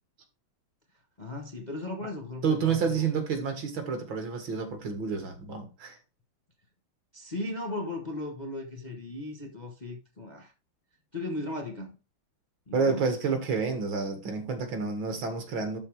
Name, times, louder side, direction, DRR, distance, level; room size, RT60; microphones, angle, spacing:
voice 1, 1.2-3.1 7.1-10.5 11.1-11.9 12.7-13.1, left 2 dB, 25° left, 1.1 m, -37 dB
voice 2, 2.4-6.0 12.7-15.8, right 5 dB, 65° right, 2.7 m, -29 dB
12.5 x 4.3 x 4.7 m
omnidirectional pair, 2.4 m